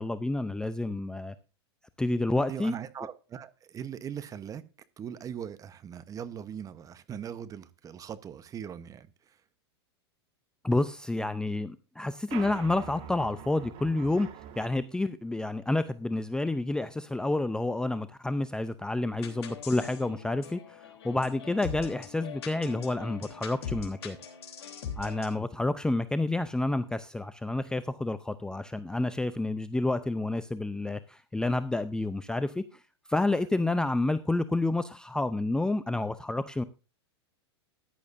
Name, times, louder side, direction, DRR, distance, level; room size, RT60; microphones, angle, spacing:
voice 1, 0.0-1.3 2.0-2.7 10.6-14.3 14.6-24.2 25.0-32.8 33.1-36.6, left 2 dB, 5° left, 0.5 m, -29 dB
voice 2, 2.5-4.6 5.0-9.4, right 8 dB, 25° right, 1.0 m, -40 dB
sound 1, 12.3-14.7, right 9 dB, 40° right, 1.7 m, -44 dB
sound 2, 19.2-25.4, left 6 dB, 70° left, 3.4 m, -42 dB
14.5 x 10.5 x 2.6 m
hypercardioid pair, 110°, 14 cm